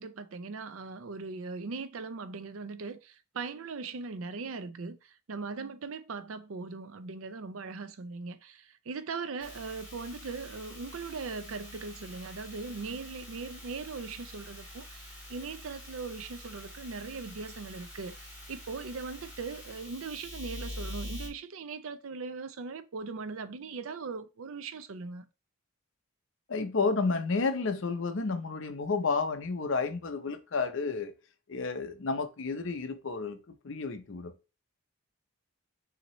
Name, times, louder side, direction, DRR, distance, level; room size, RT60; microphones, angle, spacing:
voice 1, 0.0-25.3, right 4 dB, 70° right, 0.5 m, -40 dB
sound 1, 9.4-21.3, left 1 dB, 10° right, 1.8 m, -45 dB
voice 2, 26.5-31.1 31.5-33.4 33.6-34.3, left 4 dB, 60° left, 0.7 m, -31 dB
5.9 x 2.8 x 3.0 m
head